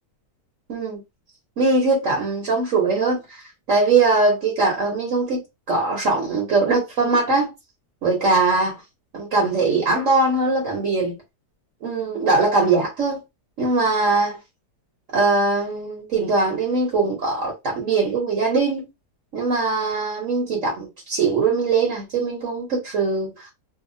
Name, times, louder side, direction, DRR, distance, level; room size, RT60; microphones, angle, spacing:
voice 1, 0.7-1.0 1.6-3.4 3.7-5.4 5.7-7.5 8.0-8.8 9.1-11.2 11.8-13.2 13.6-14.4 15.1-18.9 19.3-23.3, right 3 dB, 55° right, 1.2 m, -21 dB
2.7 x 2.4 x 2.6 m
omnidirectional pair, 1.7 m